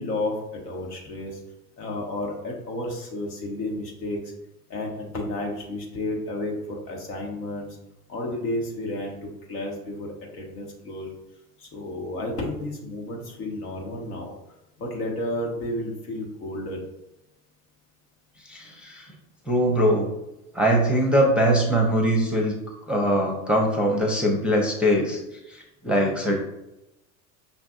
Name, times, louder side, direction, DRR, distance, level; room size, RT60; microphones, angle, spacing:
voice 1, 0.0-1.4 1.8-4.3 4.7-7.8 8.1-11.1 11.6-14.3 14.8-16.8, left 1 dB, 80° left, 0 dB, 1.2 m, -32 dB
voice 2, 18.5-19.1 19.5-20.1 20.5-22.5 22.9-25.2 25.5-26.4, equal, ahead, 0 dB, 0.6 m, -22 dB
5.6 x 2.5 x 2.4 m, 0.91 s
hypercardioid pair, 85°, 46 cm